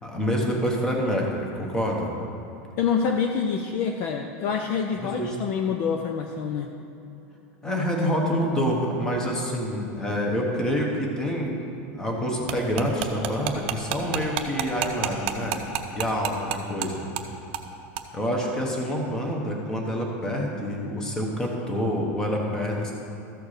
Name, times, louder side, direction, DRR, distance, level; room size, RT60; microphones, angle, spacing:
voice 1, 0.0-2.1 5.0-5.3 7.6-11.6 11.9-15.6 15.9-17.1 18.1-22.9, equal, 10° left, 0 dB, 1.0 m, -27 dB
voice 2, 2.8-6.7, left 6 dB, 35° left, 4 dB, 0.4 m, -26 dB
sound 1, 12.5-16.9 17.2-17.3 17.5-17.7 18.0-18.1, right 11 dB, 50° right, 0.7 m, -29 dB
13.5 x 4.6 x 6.5 m, 2.9 s
supercardioid pair, 180°, 7 cm